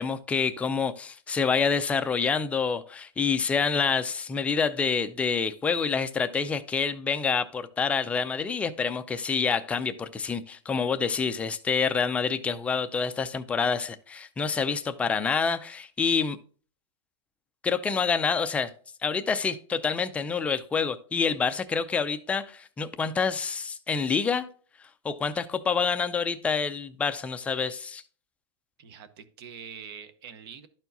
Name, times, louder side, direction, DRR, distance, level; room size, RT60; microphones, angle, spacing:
voice 1, 0.0-16.4 17.6-18.7 19.0-24.5 25.0-28.0, left 5 dB, 10° left, 9 dB, 0.3 m, -27 dB
voice 2, 28.8-30.7, right 7 dB, 60° right, 12 dB, 0.9 m, -44 dB
12.0 x 4.5 x 2.7 m, 0.43 s
supercardioid pair, 155°, 15 cm